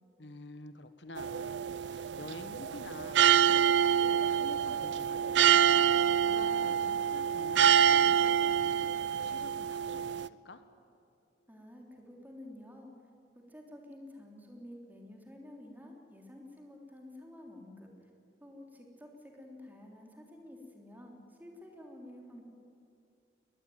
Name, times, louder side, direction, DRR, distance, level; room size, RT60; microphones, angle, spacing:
voice 1, 0.2-5.7 6.0-10.6, left 2 dB, 80° left, 10 dB, 1.5 m, -49 dB
sound 1, 1.2-10.3, right 8 dB, 85° right, 0.5 m, -26 dB
voice 2, 11.5-13.1 13.3-18.1 18.4-22.4, left 1 dB, 10° right, 1 dB, 3.5 m, -50 dB
21.5 x 20.0 x 9.5 m, 2.6 s
head